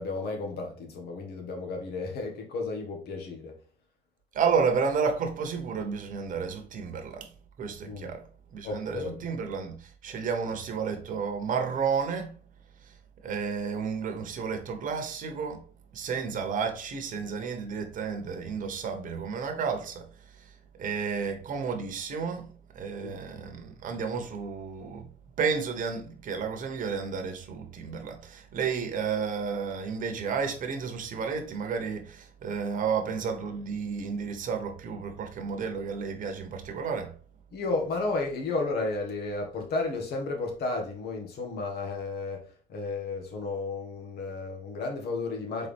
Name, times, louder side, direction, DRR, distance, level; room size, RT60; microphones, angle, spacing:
voice 1, 0.0-3.5 7.9-8.1 8.6-9.2 23.0-23.2 37.5-42.4 42.7-45.7, left 3 dB, 70° left, 1.5 m, -33 dB
voice 2, 4.3-7.3 7.6-8.3 8.5-12.3 13.2-15.6 15.9-20.1 20.4-20.5 20.8-22.5 22.7-25.1 25.4-37.1, right 6 dB, 50° right, 1.1 m, -31 dB
4.3 x 3.5 x 3.5 m
cardioid pair, 110°, 17 cm